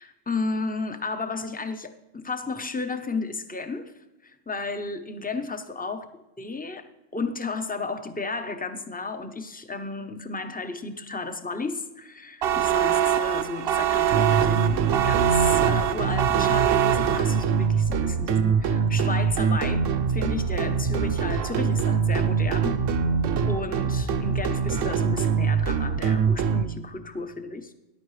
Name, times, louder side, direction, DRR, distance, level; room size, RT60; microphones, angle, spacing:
voice 1, 0.0-3.9 4.2-6.1 6.4-22.8 23.5-27.7, left 3 dB, 10° left, 7 dB, 0.4 m, -33 dB
sound 1, 12.4-17.7, right 11 dB, 60° right, 0.7 m, -24 dB
sound 2, 14.1-26.6, right 6 dB, 80° right, 1.0 m, -24 dB
14.0 x 10.5 x 3.2 m, 1.0 s
omnidirectional pair, 1.3 m